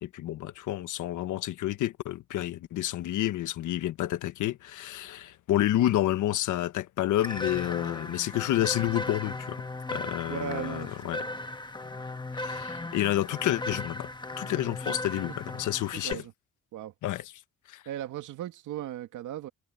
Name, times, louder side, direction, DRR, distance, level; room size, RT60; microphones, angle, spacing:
voice 1, 0.0-9.6 9.9-11.2 12.4-14.1 14.4-16.2 17.0-17.3 17.7-17.8, left 13 dB, 80° left, 1.4 m, -29 dB
sound 1, 7.2-16.1, left 2 dB, 15° left, 1.3 m, -37 dB
voice 2, 10.3-11.4 15.9-16.3 16.7-16.9 17.9-19.5, right 12 dB, 80° right, 2.3 m, -37 dB
cardioid pair, 90°, 30 cm